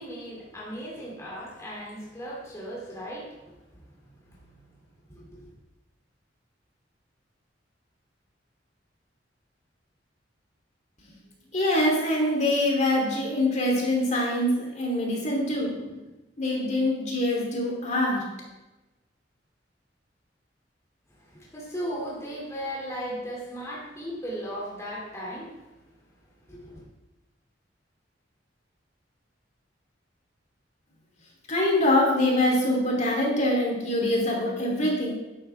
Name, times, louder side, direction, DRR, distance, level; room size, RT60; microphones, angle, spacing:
voice 1, 0.0-3.6 4.1-4.6 5.1-5.5 21.2-25.6 26.5-26.8, equal, 15° left, -5 dB, 2.5 m, -37 dB
voice 2, 11.5-16.0 16.4-18.2 31.5-35.1, left 1 dB, 40° left, -2 dB, 2.9 m, -24 dB
12.5 x 9.9 x 3.4 m, 1.0 s
head